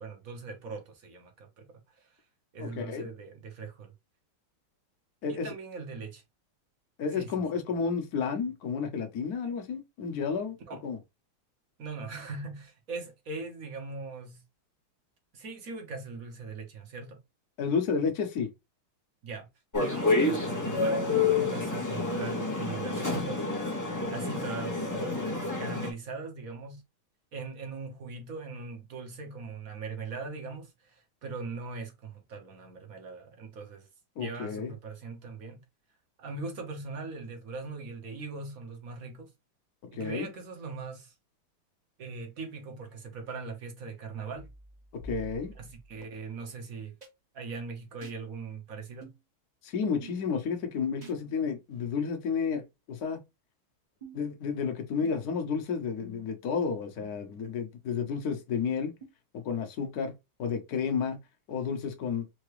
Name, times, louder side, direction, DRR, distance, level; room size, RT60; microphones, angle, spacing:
voice 1, 0.0-1.6 1.9-2.1 2.5-3.9 5.3-6.2 7.1-7.3 10.7-10.8 11.8-14.4 15.3-17.2 19.2-19.5 19.7-23.4 24.1-25.0 25.6-26.8 27.3-33.9 34.2-35.6 36.2-39.3 39.9-41.1 42.0-44.5 45.6-46.9 47.3-49.1, right 4 dB, 50° right, 1.4 m, -40 dB
voice 2, 2.6-3.1 5.2-5.5 7.0-10.6 10.8-11.0 17.6-18.5 34.2-34.7 39.9-40.3 45.0-45.5 49.6-53.2 54.1-58.9 59.3-60.1 60.4-61.2 61.5-62.2, left 6 dB, 55° left, 1.3 m, -31 dB
sound 1, 19.7-25.9, left 3 dB, 25° left, 0.4 m, -29 dB
sound 2, 44.3-46.0 47.0-47.1 48.0-48.2 49.0-49.2 50.0-50.2 51.0-51.2 52.0-52.2 53.0-53.1 54.0-54.3 55.0-55.4 56.0-56.4 57.0-57.1 58.0-58.1 59.0-59.1, right 1 dB, 25° right, 1.0 m, -48 dB
4.8 x 2.9 x 3.1 m
omnidirectional pair, 2.2 m